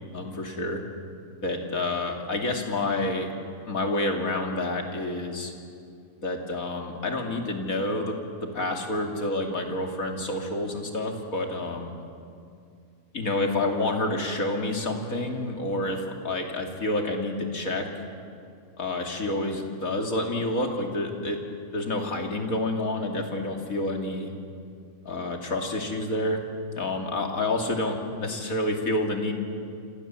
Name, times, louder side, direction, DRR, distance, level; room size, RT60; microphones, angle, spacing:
voice 1, 0.1-0.8 1.4-3.3 3.7-5.5 6.2-8.2 8.5-11.9 13.1-17.9 18.8-21.4 21.7-24.3 25.0-26.4 26.8-29.3, left 2 dB, 80° left, 2 dB, 3.1 m, -28 dB
28.0 x 26.5 x 7.6 m, 2.4 s
omnidirectional pair, 1.4 m